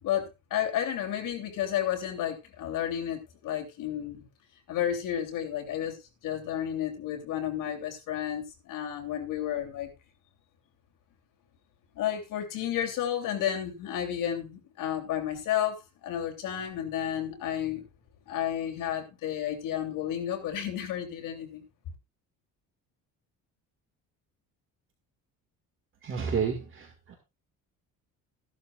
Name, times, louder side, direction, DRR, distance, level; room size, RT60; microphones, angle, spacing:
voice 1, 0.0-4.3 4.7-6.0 6.2-9.9 11.9-17.8 18.3-21.6, left 10 dB, 65° left, 3 dB, 3.2 m, -32 dB
voice 2, 26.0-27.2, right 6 dB, 35° right, 3 dB, 1.9 m, -31 dB
15.0 x 11.5 x 2.4 m, 0.25 s
cardioid pair, 170°, 35 cm